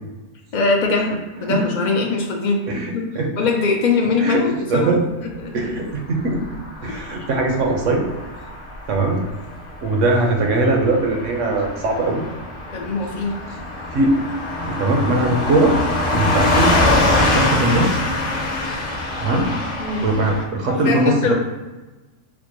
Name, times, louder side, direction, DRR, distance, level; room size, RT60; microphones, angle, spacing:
voice 1, 0.5-2.6 2.9-3.0 3.4-5.0 5.2-5.5 6.9-7.2 12.7-13.4 19.8-20.1 20.7-21.3, left 3 dB, 65° left, 1 dB, 0.4 m, -22 dB
voice 2, 2.7-3.3 4.2-5.1 5.5-6.5 6.8-8.0 8.9-9.2 9.8-12.2 13.9-14.1 14.6-15.8 16.1-16.8 17.3-17.9 19.2-19.5 20.0-21.3, right 2 dB, 70° right, 2 dB, 1.0 m, -20 dB
Car passing by / Truck, 6.1-20.4, left 2 dB, 45° left, 0.9 m, -24 dB
4.2 x 2.1 x 3.0 m, 1.2 s
omnidirectional pair, 1.4 m